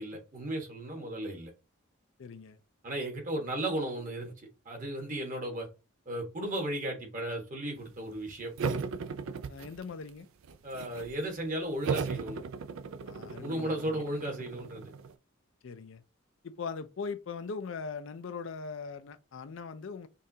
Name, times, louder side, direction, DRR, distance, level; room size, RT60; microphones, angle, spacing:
voice 1, 0.0-1.5 2.8-4.3 4.6-5.7 6.1-8.5 10.6-12.4 13.4-14.9, right 1 dB, 40° right, 1.3 m, -35 dB
voice 2, 2.2-2.6 9.5-10.3 13.1-14.0 15.6-16.0 16.4-20.1, left 5 dB, 65° left, 0.4 m, -40 dB
sound 1, 8.6-10.1 10.4-11.2 11.8-15.1, right 5 dB, 75° right, 0.4 m, -36 dB
5.3 x 2.5 x 2.7 m
head